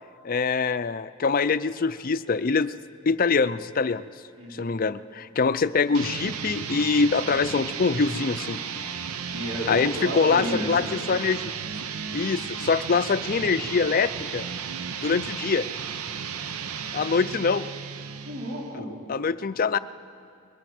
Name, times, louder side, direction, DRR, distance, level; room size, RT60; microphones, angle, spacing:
voice 1, 0.2-2.7 3.1-4.0 4.5-8.6 9.7-11.4 12.1-14.4 15.0-15.7 16.9-17.7 19.1-19.8, left 4 dB, 40° left, 14 dB, 0.4 m, -24 dB
voice 2, 4.4-4.7 9.2-10.8 18.2-18.9, equal, 65° right, -4 dB, 4.3 m, -32 dB
sound 1, 5.9-18.8, right 7 dB, 85° right, 0.7 m, -34 dB
22.0 x 20.5 x 6.1 m, 2.3 s
head